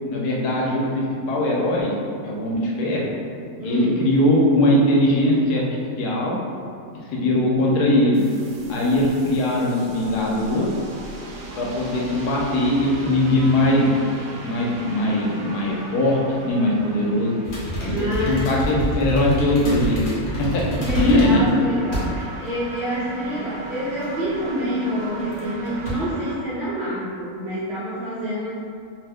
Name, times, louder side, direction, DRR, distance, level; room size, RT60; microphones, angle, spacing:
voice 1, 0.0-1.9 2.2-3.1 3.6-5.7 6.0-6.4 7.1-8.2 8.7-10.7 11.6-14.0 14.4-17.3 17.8-20.0 20.4-20.6 20.9-21.4, left 1 dB, 80° left, -3 dB, 1.1 m, -20 dB
voice 2, 3.6-4.0 17.8-18.5 20.7-28.6, equal, 60° right, -10 dB, 0.7 m, -27 dB
sound 1, 8.1-26.4, right 2 dB, 75° right, 1.0 m, -38 dB
sound 2, 17.5-21.5 21.9-22.5 22.8-22.9 24.0-24.5 25.2-25.4 25.7-25.9, right 1 dB, 50° left, 1.0 m, -27 dB
2.8 x 2.1 x 3.4 m, 2.4 s
omnidirectional pair, 1.7 m